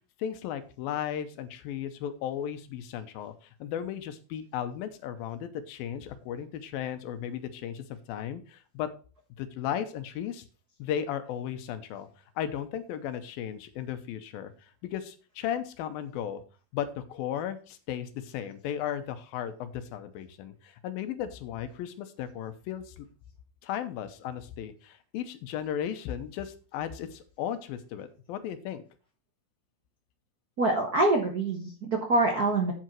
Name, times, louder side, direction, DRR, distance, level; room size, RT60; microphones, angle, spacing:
voice 1, 0.2-8.9 9.4-10.5 10.8-12.1 12.4-16.4 16.7-23.1 23.6-28.8, left 9 dB, 85° left, 10 dB, 2.7 m, -35 dB
voice 2, 30.6-32.7, right 2 dB, 85° right, 2 dB, 0.8 m, -25 dB
9.1 x 7.6 x 4.6 m, 0.36 s
omnidirectional pair, 4.2 m